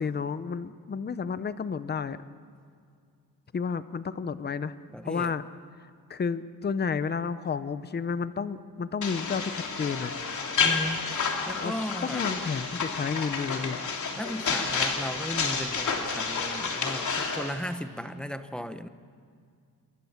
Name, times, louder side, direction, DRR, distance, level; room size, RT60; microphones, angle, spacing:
voice 1, 0.0-2.2 3.5-4.7 5.0-5.4 6.1-10.1 11.6-11.7 12.0-13.8, left 5 dB, 25° left, 13 dB, 0.8 m, -31 dB
voice 2, 4.9-5.3 10.6-11.0 11.5-12.3 14.2-18.9, equal, ahead, 10 dB, 0.9 m, -36 dB
sound 1, 9.0-17.5, left 5 dB, 55° left, 3.2 m, -30 dB
27.5 x 22.5 x 7.3 m, 2.3 s
cardioid pair, 135°, 36 cm